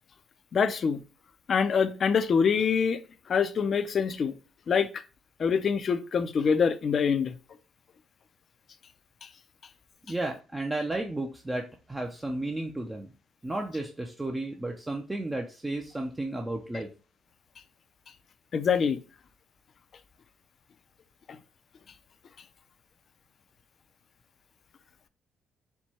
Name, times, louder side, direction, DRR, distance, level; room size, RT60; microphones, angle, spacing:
voice 1, 0.5-1.0 1.5-3.0 3.3-4.3 4.7-5.0 5.4-7.3 18.5-19.0 21.3-21.4, left 6 dB, 45° left, 0.5 m, -25 dB
voice 2, 10.1-13.1 13.4-16.9, right 2 dB, 10° right, 0.5 m, -33 dB
4.5 x 2.2 x 4.2 m
cardioid pair, 125°, 0 cm